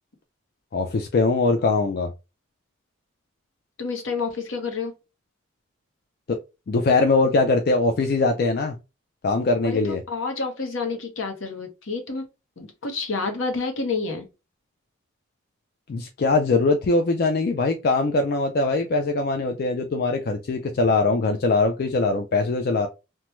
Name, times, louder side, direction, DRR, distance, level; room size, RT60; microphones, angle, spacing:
voice 1, 0.7-2.1 6.3-6.4 6.7-8.8 9.2-10.0 15.9-22.9, left 3 dB, 50° left, 0.3 m, -22 dB
voice 2, 3.8-4.9 9.6-12.2 12.6-14.3, left 4 dB, 75° left, 0.8 m, -29 dB
3.0 x 2.2 x 3.0 m
head